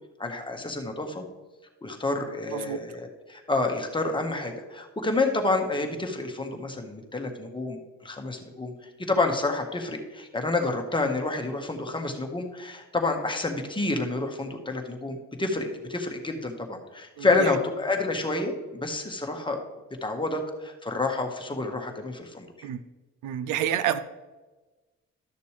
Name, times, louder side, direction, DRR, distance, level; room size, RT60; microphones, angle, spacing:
voice 1, 0.2-1.2 1.8-8.7 9.1-19.6 20.0-22.7, left 3 dB, 15° left, 3 dB, 1.4 m, -29 dB
voice 2, 23.2-24.0, right 10 dB, 90° right, 13 dB, 0.6 m, -28 dB
12.5 x 6.7 x 3.3 m, 1.2 s
cardioid pair, 90°, 30 cm